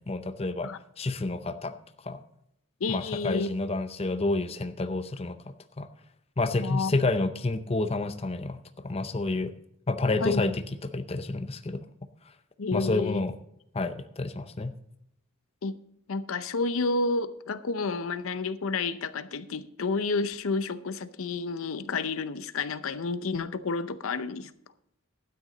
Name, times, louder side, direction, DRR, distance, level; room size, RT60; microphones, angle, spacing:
voice 1, 0.0-0.7 1.0-1.7 2.0-2.2 2.9-5.4 5.8-5.9 6.4-9.5 9.9-10.6 10.9-11.8 12.7-13.4 13.7-14.7, left 2 dB, 30° left, 9 dB, 0.6 m, -29 dB
voice 2, 2.8-3.5 6.6-6.9 10.2-10.4 12.6-13.2 15.6-15.8 16.1-24.5, left 4 dB, 85° left, 13 dB, 0.6 m, -30 dB
12.0 x 9.4 x 4.0 m, 0.74 s
head